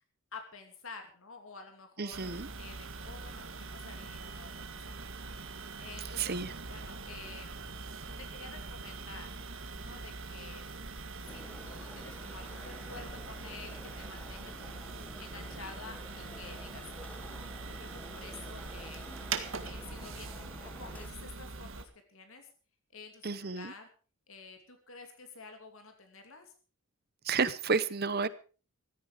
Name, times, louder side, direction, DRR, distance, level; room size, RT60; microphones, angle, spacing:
voice 1, 0.3-2.2 2.6-6.3 6.7-7.5 8.1-9.4 9.7-10.6 11.3-14.9 15.2-17.3 17.7-19.1 19.6-22.5 22.9-23.9 24.3-26.5, left 4 dB, 70° left, 5 dB, 2.8 m, -50 dB
voice 2, 2.0-2.5 6.2-6.5 23.2-23.7 27.2-28.3, right 5 dB, 45° right, 16 dB, 0.9 m, -31 dB
sound 1, 2.1-21.8, right 4 dB, 65° right, 1.8 m, -43 dB
sound 2, 11.2-21.1, left 1 dB, 5° left, 0.9 m, -51 dB
15.5 x 13.5 x 5.0 m, 0.37 s
head